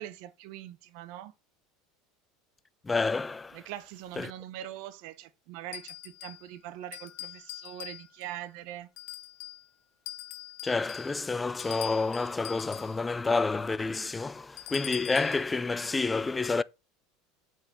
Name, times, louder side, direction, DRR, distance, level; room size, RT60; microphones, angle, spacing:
voice 1, 0.0-1.3 3.5-8.9, right 12 dB, 65° right, 0.7 m, -42 dB
voice 2, 2.8-3.6 4.2-4.3 10.6-16.6, left 3 dB, 15° left, 0.4 m, -29 dB
sound 1, 5.7-6.5 6.9-8.3 9.0-9.7 10.1-13.0 14.6-15.4, left 15 dB, 65° left, 0.7 m, -43 dB
8.0 x 4.7 x 4.2 m
supercardioid pair, 120°, 0 cm